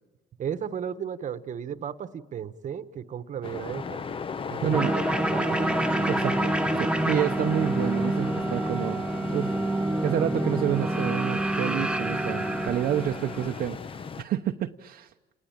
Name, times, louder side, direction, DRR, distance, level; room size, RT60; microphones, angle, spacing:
voice 1, 0.4-4.0 4.5-5.0 5.3-5.6, right 8 dB, 45° right, 12 dB, 1.3 m, -34 dB
sound 1, 3.4-14.2, left 5 dB, 30° left, 0.8 m, -37 dB
voice 2, 4.6-4.9 6.1-9.0 9.3-9.7 10.0-15.1, right 11 dB, 65° right, 3 dB, 0.9 m, -29 dB
sound 2, 4.7-13.7, right 1 dB, 5° right, 0.9 m, -27 dB
29.5 x 20.0 x 8.8 m, 1.2 s
cardioid pair, 110°, 17 cm